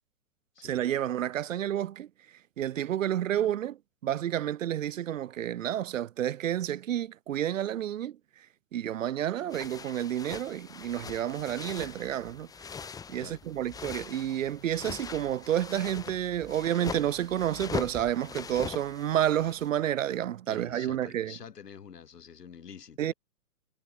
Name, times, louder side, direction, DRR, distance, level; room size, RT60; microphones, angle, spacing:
voice 1, 0.6-2.1 2.6-3.8 4.0-8.2 8.7-12.5 13.1-21.3 23.0-23.1, right 11 dB, 55° right, 0.7 m, -30 dB
sound 1, 9.5-19.7, left 6 dB, 10° left, 4.3 m, -41 dB
voice 2, 20.5-23.1, left 7 dB, 85° left, 6.6 m, -47 dB
hypercardioid pair, 165°, 46 cm